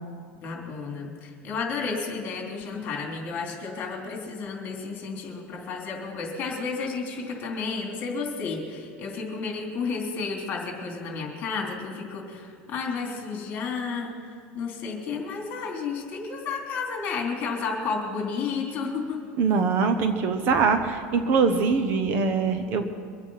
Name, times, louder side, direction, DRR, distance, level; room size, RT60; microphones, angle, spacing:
voice 1, 0.4-19.2, left 4 dB, 35° left, 1 dB, 3.2 m, -32 dB
voice 2, 19.4-22.9, right 5 dB, 40° right, 8 dB, 1.0 m, -23 dB
24.0 x 8.2 x 5.7 m, 2.3 s
supercardioid pair, 160°, 5 cm